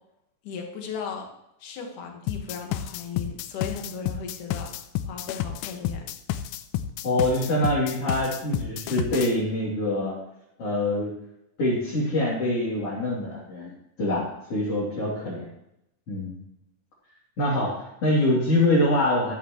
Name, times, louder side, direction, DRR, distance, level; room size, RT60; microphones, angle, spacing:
voice 1, 0.4-1.3 1.6-4.7 5.1-6.1, left 6 dB, 70° left, 2 dB, 3.1 m, -36 dB
sound 1, 2.3-9.3, left 11 dB, 90° left, 2.3 m, -31 dB
voice 2, 7.0-10.2 10.6-11.1 11.6-14.2 14.5-15.4 16.1-16.4 17.4-19.3, left 1 dB, 45° left, -7 dB, 3.8 m, -24 dB
14.0 x 13.0 x 3.1 m, 0.83 s
omnidirectional pair, 3.8 m